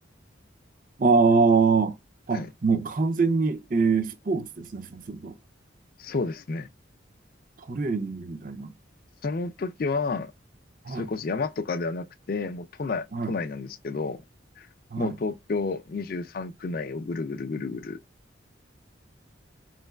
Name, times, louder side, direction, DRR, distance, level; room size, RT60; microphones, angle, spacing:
voice 1, 1.0-1.9 2.3-5.3 7.6-8.7 10.8-11.1 13.1-13.3 14.9-15.2, right 4 dB, 45° right, 0.5 m, -24 dB
voice 2, 6.0-6.7 9.2-10.3 10.9-14.2 14.6-14.7 15.0-18.0, left 4 dB, 50° left, 0.4 m, -31 dB
4.4 x 3.2 x 2.3 m
head